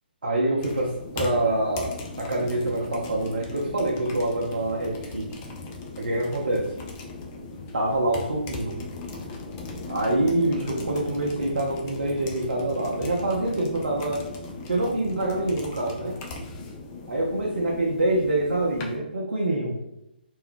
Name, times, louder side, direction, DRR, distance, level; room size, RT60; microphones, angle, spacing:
voice 1, 0.2-5.3 6.0-6.7 7.7-8.7 9.9-14.3 14.7-16.2 17.1-19.8, right 1 dB, 75° right, -3 dB, 0.6 m, -26 dB
sound 1, 0.6-19.0, left 2 dB, 25° left, 0.4 m, -38 dB
2.6 x 2.2 x 3.5 m, 0.84 s
figure-of-eight pair, 140°, 6 cm